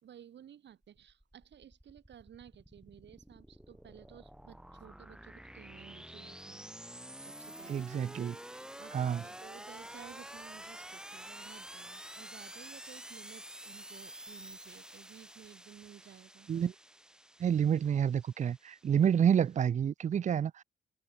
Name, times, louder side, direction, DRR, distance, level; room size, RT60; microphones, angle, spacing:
voice 1, 0.0-6.7 7.2-16.5, right 10 dB, 65° right, 3.4 m, -55 dB
sound 1, 0.8-19.6, right 1 dB, 5° right, 1.4 m, -49 dB
voice 2, 7.7-8.4 8.9-9.2 16.5-16.7 17.4-20.6, right 8 dB, 40° right, 0.5 m, -29 dB
cardioid pair, 90°, 20 cm